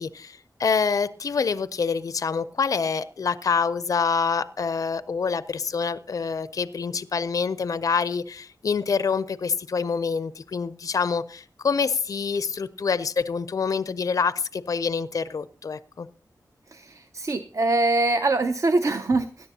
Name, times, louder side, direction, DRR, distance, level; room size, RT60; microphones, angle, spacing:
voice 1, 0.0-16.1, left 5 dB, 60° left, 0.4 m, -26 dB
voice 2, 16.7-19.5, right 2 dB, 50° right, 0.5 m, -23 dB
17.0 x 10.5 x 2.7 m
wide cardioid pair, 105°, 7 cm